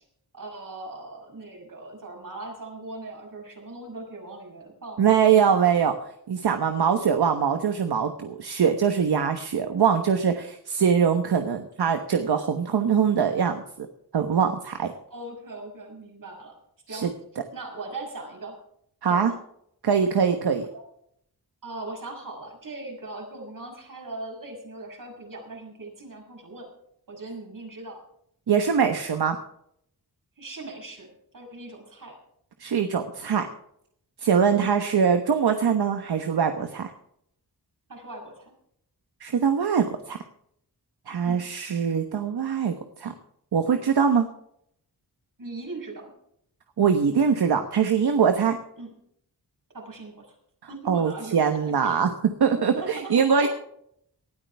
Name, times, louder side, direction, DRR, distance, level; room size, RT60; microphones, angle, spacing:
voice 1, 0.3-5.2 15.1-16.5 16.9-17.1 17.5-18.5 19.0-19.4 20.7-20.8 21.6-26.7 27.1-28.0 30.4-31.1 31.3-32.1 37.9-38.5 41.2-41.4 45.4-46.1 48.8-48.9 49.7-50.3 50.7-52.1 52.5-53.1 53.4-53.5, right 2 dB, 55° right, 0 dB, 6.3 m, -39 dB
voice 2, 5.0-13.9 14.1-14.9 16.9-17.1 19.0-19.3 19.8-20.7 28.5-29.4 32.6-33.5 34.2-36.9 39.2-40.2 41.1-43.1 43.5-44.3 46.8-48.6 50.9-53.5, right 7 dB, 75° right, 6 dB, 1.2 m, -23 dB
19.0 x 13.0 x 3.5 m, 0.70 s
wide cardioid pair, 95°, 39 cm